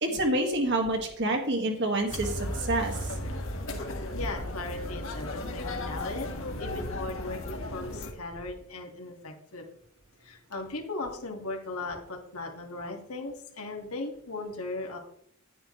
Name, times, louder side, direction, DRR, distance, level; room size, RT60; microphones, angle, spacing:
voice 1, 0.0-3.0, right 1 dB, 55° right, 3 dB, 2.0 m, -27 dB
sound 1, 2.1-8.1, left 1 dB, 65° left, 1.7 m, -35 dB
voice 2, 4.1-6.3 6.6-9.7 10.2-15.0, left 2 dB, 90° left, 2 dB, 2.2 m, -37 dB
10.5 x 9.9 x 3.3 m, 0.69 s
head